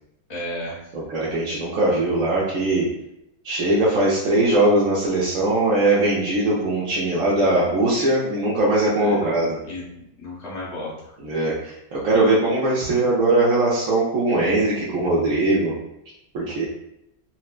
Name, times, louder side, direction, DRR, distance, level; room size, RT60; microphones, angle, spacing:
voice 1, 0.3-0.8 9.0-9.3 9.7-10.9, left 1 dB, 30° left, -7 dB, 1.0 m, -33 dB
voice 2, 0.9-2.9 3.4-9.6 11.2-15.7 16.3-16.7, right 2 dB, 65° right, -8 dB, 1.1 m, -20 dB
4.3 x 2.0 x 2.3 m, 0.84 s
omnidirectional pair, 1.6 m